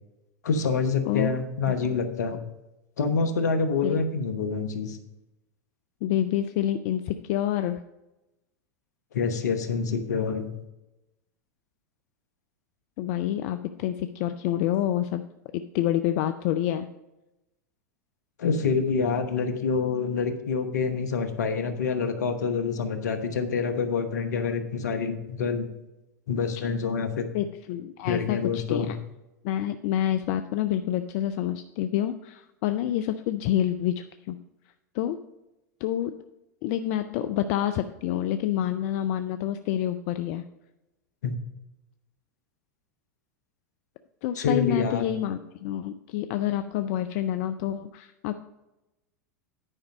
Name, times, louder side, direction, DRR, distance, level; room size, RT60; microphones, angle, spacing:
voice 1, 0.4-2.4 3.0-5.0 9.1-10.5 18.4-25.7 26.3-27.3 28.0-28.9 41.2-41.4 44.3-45.0, left 5 dB, 75° left, 8 dB, 1.1 m, -27 dB
voice 2, 6.0-7.8 13.0-15.2 15.5-16.9 27.3-29.0 29.4-34.4 34.9-35.2 35.8-36.1 36.6-40.4 44.2-48.4, left 11 dB, 55° left, 10 dB, 0.4 m, -28 dB
9.9 x 5.2 x 5.2 m, 0.96 s
hypercardioid pair, 90°, 9 cm